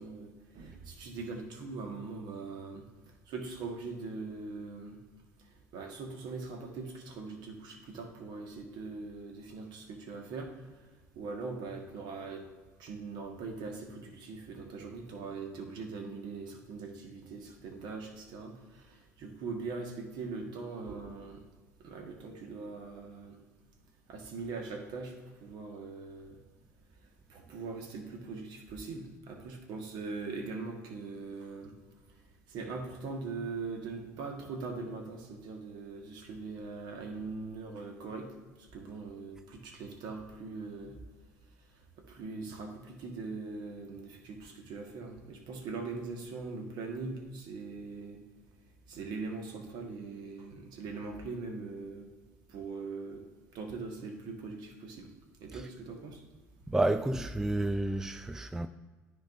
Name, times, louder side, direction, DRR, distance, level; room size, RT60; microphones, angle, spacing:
voice 1, 0.0-2.8 3.3-5.0 5.7-10.5 11.1-12.4 12.8-21.4 21.8-23.4 24.1-25.1 25.4-26.4 27.3-31.7 32.5-38.3 38.7-41.0 42.1-48.2 48.9-52.1 52.5-53.2 53.5-55.1 55.4-56.2, right 4 dB, 55° right, 1.5 m, -41 dB
voice 2, 56.7-58.7, right 2 dB, 5° right, 0.3 m, -30 dB
13.0 x 4.5 x 2.6 m
figure-of-eight pair, 65°, 9 cm